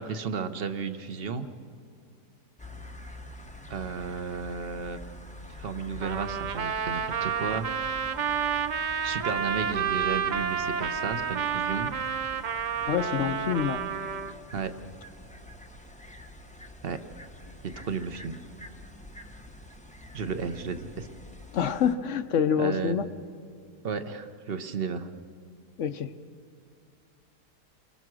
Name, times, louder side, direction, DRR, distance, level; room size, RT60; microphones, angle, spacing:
voice 1, 0.0-1.5 3.7-5.0 5.6-7.7 9.0-11.9 14.5-14.7 16.8-17.0 17.6-18.4 20.1-21.1 22.6-23.0 23.8-25.1, right 5 dB, 40° right, 9 dB, 1.0 m, -33 dB
sound 1, 2.6-21.9, left 1 dB, 5° left, 0.6 m, -46 dB
Trumpet, 6.0-14.3, right 7 dB, 85° right, 0.4 m, -30 dB
voice 2, 12.9-13.8 21.5-23.1 25.8-26.1, left 8 dB, 55° left, 11 dB, 0.9 m, -26 dB
29.5 x 22.5 x 6.2 m, 2.2 s
omnidirectional pair, 1.8 m